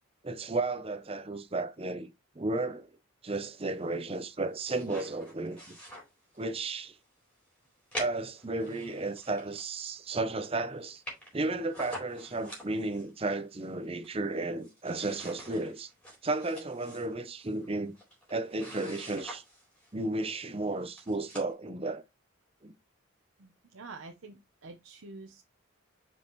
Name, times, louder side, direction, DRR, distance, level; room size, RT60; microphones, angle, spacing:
voice 1, 0.2-2.1 2.4-2.9 3.2-5.8 6.4-6.9 8.0-11.0 11.3-15.9 16.2-18.0 18.3-19.4 19.9-22.0 22.6-22.7, right 2 dB, 30° right, 0.7 m, -33 dB
sound 1, 4.3-6.6 7.0-7.1 7.9-10.0 10.3-10.4 10.6-10.7 10.9-13.1 13.6-14.3 14.6-20.0 20.6-20.7 21.0-21.5, equal, 5° left, 4.1 m, -46 dB
voice 2, 23.4-25.4, right 3 dB, 80° right, 0.8 m, -47 dB
7.1 x 5.3 x 3.0 m
head